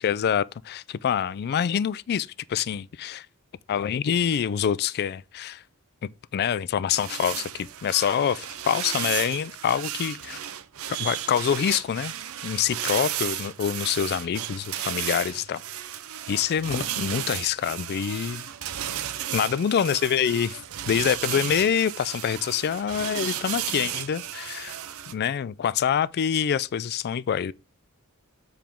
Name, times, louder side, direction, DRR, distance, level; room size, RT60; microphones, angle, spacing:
voice 1, 0.0-3.3 3.7-5.6 6.3-10.4 11.0-12.1 12.4-15.6 16.3-18.4 19.3-20.6 20.9-24.8 25.1-27.5, left 8 dB, 45° left, 0.3 m, -26 dB
sound 1, 6.9-25.1, right 11 dB, 70° right, 0.5 m, -34 dB
7.2 x 4.4 x 3.5 m
head